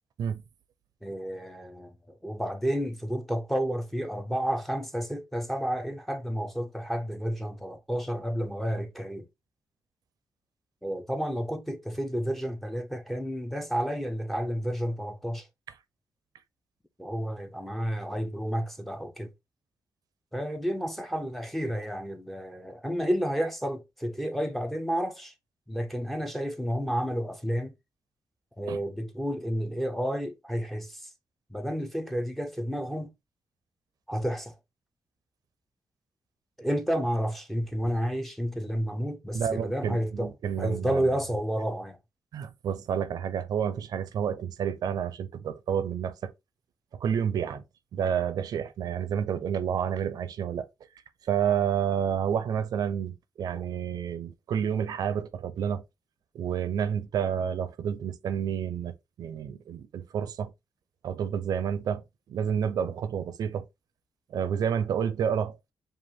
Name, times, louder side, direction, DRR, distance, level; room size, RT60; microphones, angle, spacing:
voice 1, 1.0-9.3 10.8-15.5 17.0-19.3 20.3-25.3 25.7-27.7 28.6-31.1 31.5-33.1 34.1-34.5 36.6-40.3 40.6-42.0 53.5-53.6, equal, ahead, 0.7 m, -31 dB
voice 2, 39.3-41.0 42.3-46.3 47.0-47.6 47.9-50.7 51.3-55.8 56.3-60.5 61.0-62.0 62.3-63.6 64.3-65.6, right 8 dB, 80° right, 0.6 m, -29 dB
5.1 x 2.5 x 3.6 m
wide cardioid pair, 130°, 7 cm